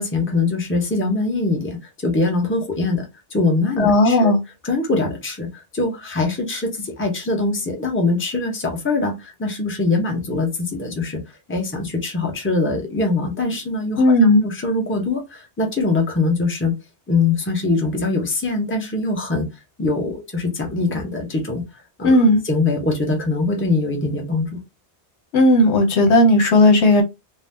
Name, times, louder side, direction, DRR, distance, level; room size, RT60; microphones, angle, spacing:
voice 1, 0.0-4.3 4.6-11.2 11.5-14.0 14.4-16.7 17.1-19.5 19.8-21.6 22.0-24.6, left 3 dB, 10° left, 0.7 m, -23 dB
voice 2, 3.8-4.4 14.0-14.4 22.0-22.4 25.3-27.0, left 1 dB, 75° left, 1.1 m, -14 dB
2.8 x 2.1 x 3.4 m
omnidirectional pair, 1.2 m